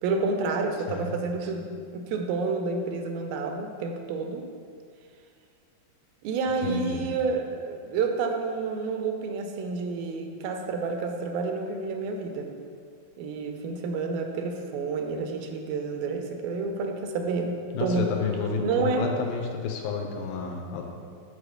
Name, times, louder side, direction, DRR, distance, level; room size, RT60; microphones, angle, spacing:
voice 1, 0.0-4.5 6.2-12.5 13.2-18.1 18.6-19.1, right 4 dB, 85° right, 4 dB, 2.4 m, -29 dB
voice 2, 6.6-7.1 17.7-20.8, left 5 dB, 90° left, 3 dB, 2.6 m, -30 dB
6.0 x 4.8 x 6.5 m, 2.2 s
omnidirectional pair, 4.1 m